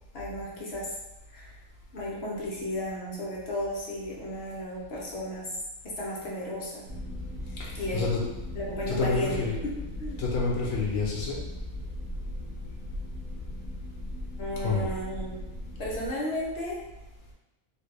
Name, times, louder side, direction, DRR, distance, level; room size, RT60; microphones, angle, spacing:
voice 1, 0.1-0.9 1.3-1.6 1.9-5.6 5.8-6.9 7.7-8.1 8.5-9.7 10.0-10.2 14.4-15.4 15.8-16.8, left 1 dB, 55° left, -5 dB, 1.2 m, -34 dB
sound 1, 6.9-16.1, left 1 dB, 85° right, 1.1 m, -38 dB
voice 2, 7.6-8.2 8.9-9.6 10.2-11.4 14.6-14.9, left 4 dB, 80° left, -3 dB, 1.2 m, -28 dB
3.7 x 2.4 x 3.3 m, 0.98 s
omnidirectional pair, 1.4 m